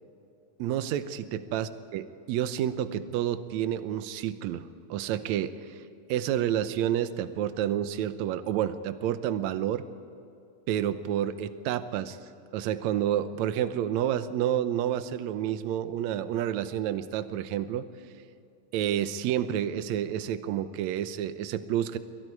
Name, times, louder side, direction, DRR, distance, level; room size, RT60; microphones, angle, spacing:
voice 1, 0.6-5.7 6.1-9.8 10.7-12.2 12.5-17.9 18.7-22.0, right 10 dB, 75° right, 11 dB, 1.8 m, -29 dB
29.0 x 23.0 x 4.7 m, 2.6 s
omnidirectional pair, 4.1 m